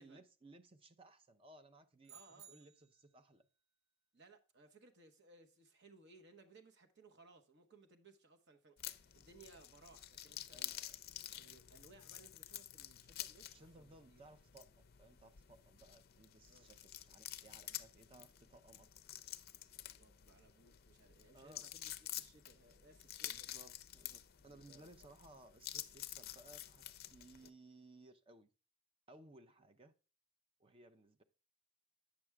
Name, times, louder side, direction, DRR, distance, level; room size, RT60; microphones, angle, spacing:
voice 1, 0.0-2.2 2.5-3.5 10.5-10.8 13.5-18.9 21.3-21.7 23.3-26.8 27.1-28.5 29.1-29.9 30.6-31.2, right 2 dB, 25° right, 0.6 m, -61 dB
sound 1, 2.0-3.2, right 8 dB, 70° right, 0.6 m, -59 dB
voice 2, 2.1-2.7 4.1-14.2 16.5-16.7 19.6-23.5 24.4-25.1, right 3 dB, 55° right, 1.1 m, -64 dB
sound 2, 8.8-27.5, left 13 dB, 45° left, 0.5 m, -50 dB
8.7 x 6.1 x 3.4 m
head